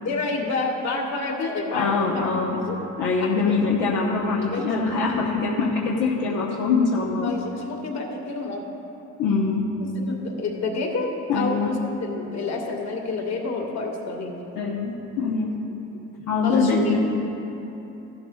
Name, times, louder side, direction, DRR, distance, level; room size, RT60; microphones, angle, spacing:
voice 1, 0.0-2.8 3.2-3.5 4.5-5.0 7.2-8.7 9.8-14.4 16.4-17.0, left 3 dB, 60° left, 0 dB, 1.9 m, -29 dB
voice 2, 1.7-2.6 3.0-7.3 9.2-9.7 11.3-11.7 14.6-15.5 16.3-17.0, left 4 dB, 90° left, -3 dB, 1.0 m, -23 dB
15.0 x 12.0 x 2.4 m, 3.0 s
cardioid pair, 90°, 30 cm